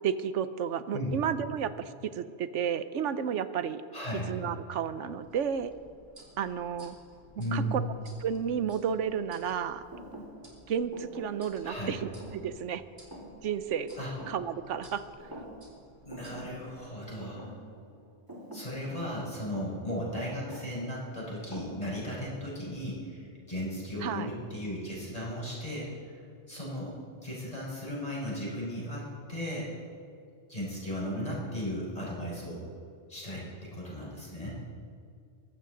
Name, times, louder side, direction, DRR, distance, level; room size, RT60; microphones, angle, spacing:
voice 1, 0.0-3.8 4.3-5.7 6.4-7.0 7.5-7.9 8.2-9.8 10.7-12.8 13.4-13.9 14.3-15.1 24.0-24.3, right 8 dB, 85° right, 13 dB, 1.1 m, -32 dB
voice 2, 3.9-4.3 7.4-7.9 11.6-12.0 14.0-14.1 16.1-17.5 18.5-26.9 27.2-29.7 30.5-32.7 33.1-34.6, equal, 30° left, -6 dB, 5.2 m, -36 dB
sound 1, 5.2-16.8, right 1 dB, 55° right, 3.3 m, -57 dB
Thump thud, 9.9-14.9 15.2-15.8 16.1-22.2, right 1 dB, 15° right, 2.2 m, -48 dB
22.0 x 15.0 x 3.9 m, 2.3 s
omnidirectional pair, 1.2 m